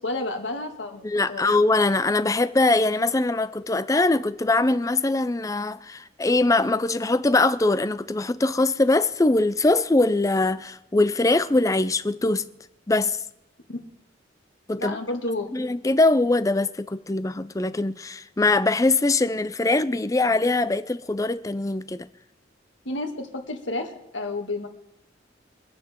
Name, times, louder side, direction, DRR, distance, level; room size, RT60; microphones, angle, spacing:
voice 1, 0.0-1.6 13.7-13.8 14.8-15.5 22.9-24.7, left 2 dB, 85° left, 2.0 m, -31 dB
voice 2, 1.0-12.5 12.9-13.2 14.7-15.0 15.5-22.1, left 2 dB, 15° left, 0.4 m, -22 dB
25.0 x 8.7 x 3.7 m
head